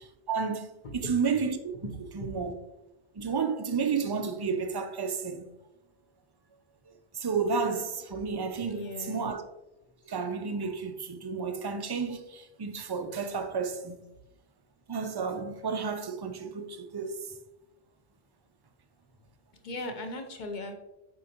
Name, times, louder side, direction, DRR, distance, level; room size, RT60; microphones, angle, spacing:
voice 1, 0.3-1.6 1.8-2.5 3.2-5.5 7.1-9.4 10.1-14.0 14.9-17.2, right 5 dB, 35° right, 0.4 m, -31 dB
voice 2, 0.8-1.2 1.8-2.3 8.6-9.3 19.6-20.7, left 2 dB, 50° left, 0.9 m, -38 dB
7.4 x 5.1 x 2.9 m
omnidirectional pair, 1.1 m